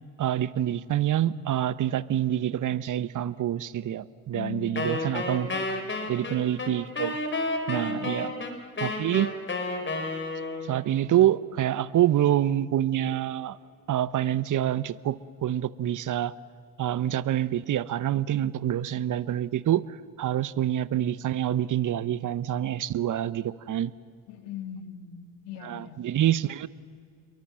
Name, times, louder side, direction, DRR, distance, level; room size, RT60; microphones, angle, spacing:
voice 1, 0.2-5.7 6.1-7.2 7.7-8.3 8.8-9.3 10.7-13.6 13.9-16.3 16.8-19.8 20.2-23.9 25.7-26.7, right 11 dB, 45° right, 17 dB, 1.0 m, -26 dB
voice 2, 4.3-5.3 5.7-6.6 7.9-8.5 24.3-26.0, left 7 dB, 75° left, 7 dB, 2.4 m, -41 dB
Wind instrument woodwind instrument, 4.8-10.8, left 2 dB, 30° left, 4.4 m, -31 dB
28.0 x 23.0 x 7.6 m, 2.2 s
hypercardioid pair, 65°, 42 cm